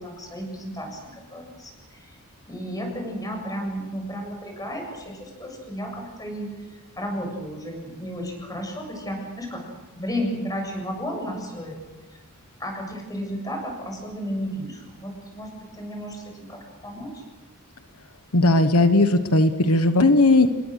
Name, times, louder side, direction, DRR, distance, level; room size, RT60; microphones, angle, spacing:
voice 1, 0.0-2.2 2.5-6.5 7.0-9.6 9.9-11.8 12.6-17.2, equal, 15° left, 2 dB, 7.4 m, -33 dB
voice 2, 18.3-20.5, left 2 dB, 80° left, 9 dB, 1.3 m, -17 dB
28.0 x 22.0 x 6.7 m, 1.2 s
head